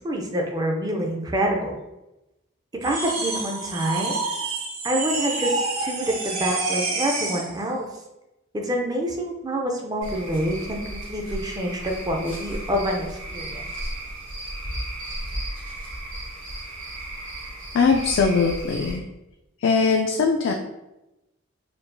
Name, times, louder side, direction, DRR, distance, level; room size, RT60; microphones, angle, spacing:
voice 1, 0.0-1.8 2.8-4.2 4.8-7.9 8.5-11.8 12.1-13.6, equal, 20° right, 1 dB, 0.4 m, -27 dB
sound 1, 2.8-7.5, right 3 dB, 90° right, 0.7 m, -28 dB
Cricket / Frog, 10.0-18.9, right 1 dB, 75° right, 1.4 m, -34 dB
voice 2, 17.7-19.0 19.6-20.5, left 5 dB, 65° left, 1 dB, 0.3 m, -20 dB
4.4 x 2.3 x 2.6 m, 0.96 s
head